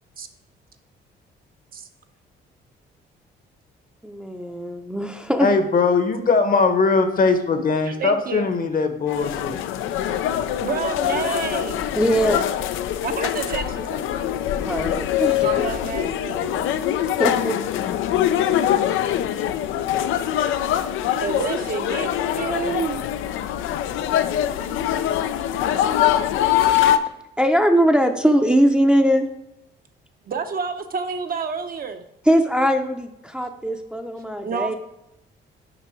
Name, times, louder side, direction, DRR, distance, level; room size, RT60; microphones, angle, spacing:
voice 1, 4.0-5.5 11.9-12.5 14.6-15.6 17.0-17.6 18.5-18.6 27.4-29.3 32.2-34.7, equal, 5° right, 4 dB, 0.6 m, -21 dB
voice 2, 5.4-9.6, left 4 dB, 45° left, 7 dB, 1.0 m, -20 dB
voice 3, 7.9-8.5 10.3-10.4 10.6-11.9 13.0-14.0 15.4-16.7 21.2-23.1 30.3-32.0 34.4-34.7, right 5 dB, 45° right, 7 dB, 0.7 m, -29 dB
sound 1, 9.1-27.0, left 11 dB, 85° left, 0.5 m, -23 dB
6.8 x 5.3 x 4.5 m, 0.86 s
cardioid pair, 90°, 20 cm